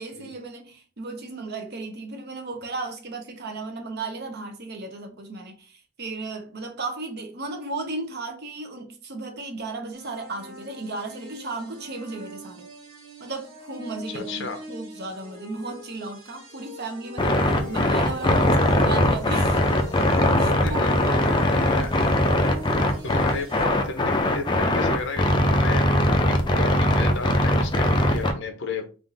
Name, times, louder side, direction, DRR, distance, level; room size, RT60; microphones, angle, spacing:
voice 1, 0.0-12.7 13.2-19.9 20.4-21.9, right 3 dB, 50° right, 0.8 m, -35 dB
sound 1, 9.9-23.6, left 1 dB, 80° right, 2.0 m, -43 dB
voice 2, 14.1-14.6 17.6-17.9 20.6-20.9 21.7-22.0 23.0-25.8 26.3-28.8, left 4 dB, 60° left, 0.7 m, -33 dB
sound 2, 17.2-28.3, left 1 dB, 20° left, 0.5 m, -21 dB
3.6 x 2.5 x 3.9 m
head